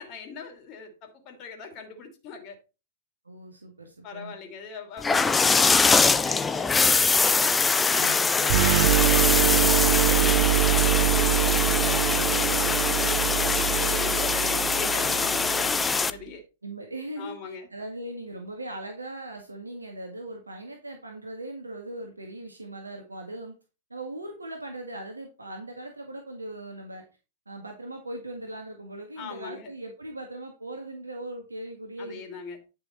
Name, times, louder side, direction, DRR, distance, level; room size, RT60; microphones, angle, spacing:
voice 1, 0.0-2.6 4.0-7.6 8.0-10.4 10.6-16.4 17.2-17.7 29.2-29.7 32.0-32.6, left 5 dB, 35° left, 2.9 m, -41 dB
voice 2, 3.3-4.4 7.9-8.5 16.6-23.5 23.9-27.0 27.5-32.2, right 1 dB, 80° right, 1.7 m, -39 dB
sound 1, 5.0-16.1, left 4 dB, 10° left, 0.6 m, -23 dB
sound 2, 8.5-16.1, right 15 dB, 55° right, 0.5 m, -25 dB
10.5 x 5.8 x 4.3 m
figure-of-eight pair, 105°, 0 cm